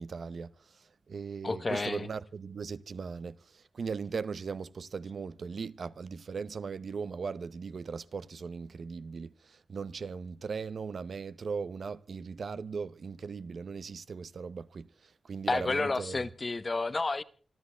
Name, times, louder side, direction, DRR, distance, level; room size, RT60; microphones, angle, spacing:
voice 1, 0.0-16.2, right 5 dB, 60° right, 0.7 m, -39 dB
voice 2, 1.4-2.1 15.5-17.2, left 3 dB, 30° left, 0.9 m, -30 dB
27.0 x 13.0 x 3.4 m
wide cardioid pair, 150°, 0 cm